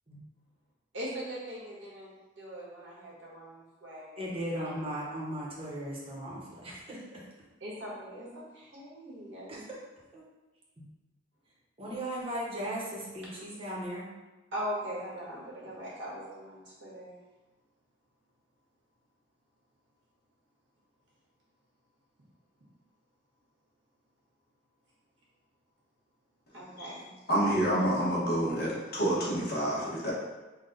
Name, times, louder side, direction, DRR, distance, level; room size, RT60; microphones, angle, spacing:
voice 1, 0.9-4.7 7.6-9.6 14.5-17.2 26.5-27.1, equal, 90° right, -6 dB, 1.5 m, -41 dB
voice 2, 4.2-7.2 9.5-9.8 10.1-10.2 10.8-10.9 11.8-14.1, right 1 dB, 30° right, -5 dB, 0.9 m, -37 dB
voice 3, 27.3-30.1, right 1 dB, 55° left, -6 dB, 1.1 m, -28 dB
3.9 x 2.3 x 3.9 m, 1.1 s
head